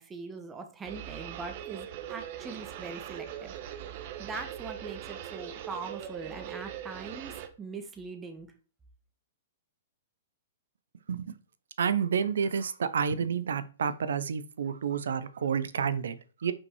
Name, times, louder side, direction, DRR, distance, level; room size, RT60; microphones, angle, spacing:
voice 1, 0.0-3.5 4.2-8.5, right 4 dB, 15° right, 6 dB, 1.3 m, -41 dB
sound 1, 0.8-7.5, right 10 dB, 50° right, 1.1 m, -41 dB
voice 2, 11.8-16.5, right 7 dB, 70° right, 14 dB, 0.7 m, -30 dB
5.7 x 5.3 x 4.7 m, 0.37 s
hypercardioid pair, 115°, 0 cm